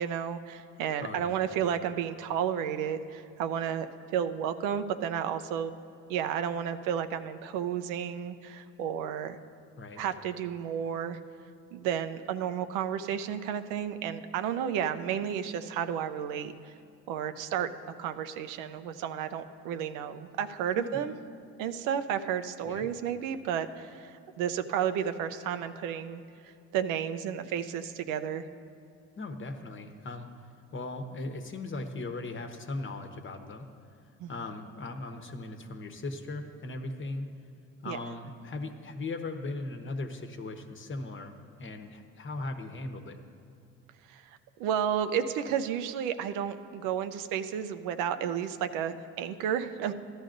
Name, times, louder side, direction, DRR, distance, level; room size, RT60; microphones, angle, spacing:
voice 1, 0.0-3.9 4.1-5.8 6.1-9.4 10.0-11.2 11.7-16.5 17.1-17.7 18.0-21.1 21.6-26.2 26.7-28.4 34.2-34.3 37.9-38.0 44.1-44.2 44.6-49.9, right 8 dB, 90° right, 9 dB, 0.6 m, -32 dB
voice 2, 1.0-1.3 9.8-10.0 20.8-21.0 22.6-22.8 29.2-30.3 30.7-33.7 34.3-37.3 37.8-41.3 41.6-43.2, left 2 dB, 40° left, 5 dB, 1.0 m, -38 dB
14.5 x 11.5 x 2.6 m, 2.4 s
cardioid pair, 90°, 31 cm